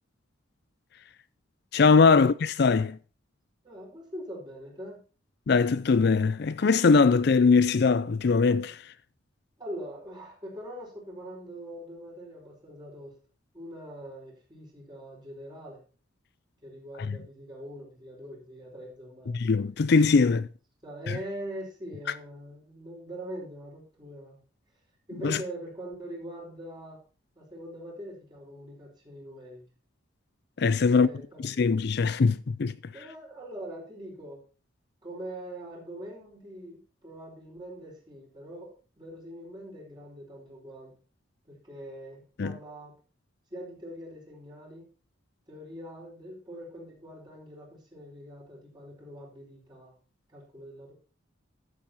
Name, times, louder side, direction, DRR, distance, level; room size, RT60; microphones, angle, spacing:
voice 1, 1.7-3.0 5.5-8.8 17.1-17.2 19.3-20.5 21.1-21.2 25.2-25.4 30.6-31.1 31.4-32.7 42.4-42.6, left 4 dB, 50° left, 0.4 m, -21 dB
voice 2, 3.6-5.0 9.6-13.1 13.5-15.8 16.6-19.3 20.8-24.4 25.1-27.0 27.4-29.6 30.9-31.4 32.9-34.4 35.0-40.9 41.5-42.9 43.5-44.9 45.5-49.9 50.3-50.9, right 1 dB, 20° right, 4.9 m, -43 dB
13.0 x 7.5 x 4.5 m
head